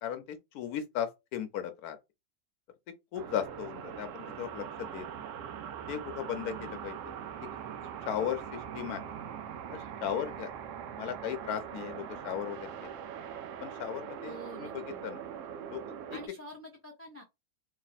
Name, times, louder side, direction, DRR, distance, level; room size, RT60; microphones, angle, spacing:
voice 1, 0.0-2.0 3.1-5.1 5.9-7.0 8.0-9.0 9.7-10.5 11.0-12.7 13.6-15.2 15.7-15.8, left 9 dB, 85° left, 1.1 m, -36 dB
sound 1, 3.1-16.3, right 8 dB, 65° right, 0.9 m, -42 dB
voice 2, 14.2-15.0 16.1-17.2, equal, 15° left, 0.6 m, -47 dB
2.9 x 2.7 x 4.0 m
omnidirectional pair, 1.6 m